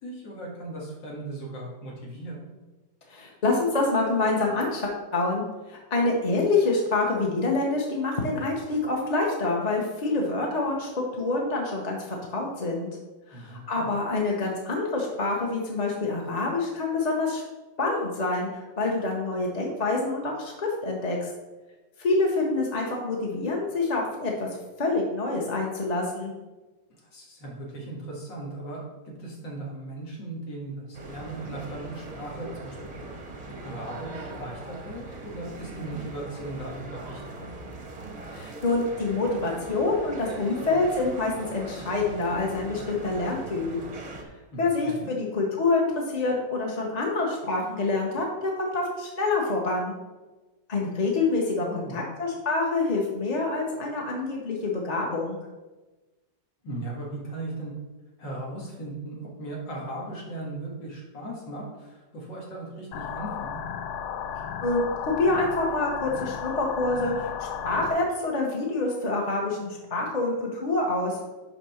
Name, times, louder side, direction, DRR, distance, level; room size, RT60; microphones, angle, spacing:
voice 1, 0.0-2.5 13.3-13.9 27.1-32.8 33.4-37.5 44.5-45.1 51.6-52.0 56.6-57.7 58.2-63.6, right 2 dB, 90° left, -3 dB, 2.6 m, -37 dB
voice 2, 3.1-5.4 5.7-10.9 11.2-12.9 13.3-17.4 17.8-18.5 18.8-21.3 22.0-24.5 24.8-26.3 38.3-43.8 44.6-49.9 50.7-55.4 64.6-71.2, left 3 dB, 35° left, -1 dB, 0.7 m, -26 dB
sound 1, 30.9-44.2, right 2 dB, 35° right, 0.6 m, -40 dB
sound 2, 62.9-67.9, left 8 dB, 70° left, 1.1 m, -34 dB
5.6 x 5.1 x 5.7 m, 1.2 s
omnidirectional pair, 1.9 m